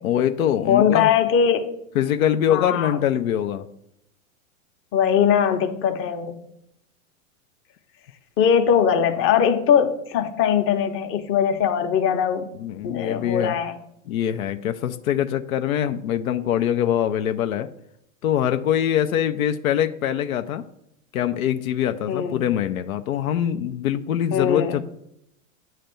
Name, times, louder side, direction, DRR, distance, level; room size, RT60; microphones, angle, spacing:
voice 1, 0.0-1.1 2.0-3.7 12.6-13.6 14.1-17.7 18.2-20.6 21.1-24.8, left 10 dB, 75° left, 8 dB, 0.7 m, -23 dB
voice 2, 0.7-1.7 2.5-3.0 4.9-6.4 8.4-12.5 12.8-13.8 22.1-22.4 24.3-24.8, left 8 dB, 30° left, 6 dB, 0.9 m, -21 dB
9.1 x 3.3 x 6.6 m, 0.76 s
hypercardioid pair, 120°, 42 cm